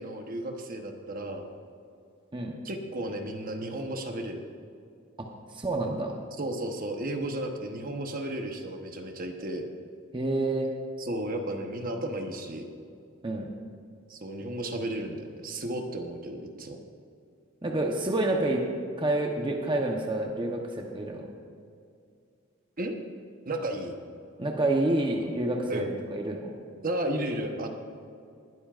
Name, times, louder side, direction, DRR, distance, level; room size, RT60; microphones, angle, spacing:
voice 1, 0.0-1.5 2.6-4.4 6.4-9.7 11.0-12.7 14.1-16.8 22.8-22.9 23.5-24.0 25.7-25.9 26.8-27.7, right 1 dB, 45° right, 4 dB, 1.0 m, -33 dB
voice 2, 5.2-6.1 10.1-10.7 13.2-13.5 17.6-18.6 19.0-21.3 24.4-26.5, right 2 dB, 25° right, 1 dB, 0.9 m, -28 dB
19.5 x 12.0 x 2.5 m, 2.4 s
head